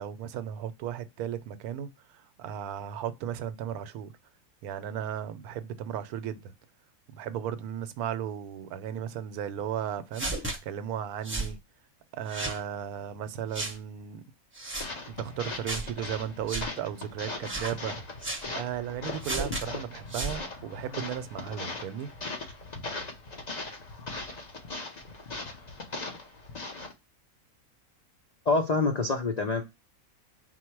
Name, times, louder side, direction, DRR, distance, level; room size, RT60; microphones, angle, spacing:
voice 1, 0.0-4.1 4.6-6.5 7.1-10.3 10.6-11.6 12.1-14.2 15.2-18.1 18.5-22.1, right 9 dB, 80° right, 1.1 m, -35 dB
sound 1, 10.1-10.6 11.2-11.5 12.3-12.6 13.5-13.8 14.5-14.9 15.7-15.9 16.5-16.7 17.4-17.8 18.2-18.4 19.2-19.6 20.1-20.4, right 2 dB, 10° right, 0.6 m, -33 dB
sound 2, 14.8-26.9, left 2 dB, 40° left, 0.7 m, -39 dB
voice 2, 28.5-29.6, left 3 dB, 85° left, 0.3 m, -26 dB
4.5 x 2.1 x 4.4 m
omnidirectional pair, 1.6 m